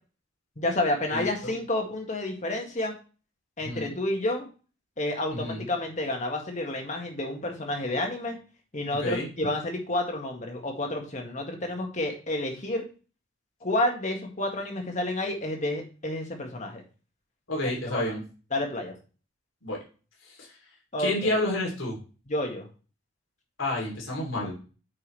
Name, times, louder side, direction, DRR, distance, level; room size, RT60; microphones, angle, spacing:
voice 1, 0.6-2.9 3.6-4.5 5.0-8.4 8.7-12.9 13.6-16.8 17.6-18.2 18.5-19.0 20.9-21.4 22.3-22.7, left 1 dB, 40° left, 3 dB, 1.8 m, -30 dB
voice 2, 1.1-1.5 3.6-3.9 5.3-5.6 9.0-9.3 17.5-18.2 19.6-19.8 20.3-20.5 21.0-22.0 23.6-24.5, left 1 dB, 80° left, -1 dB, 3.2 m, -30 dB
9.3 x 5.5 x 3.3 m, 0.35 s
head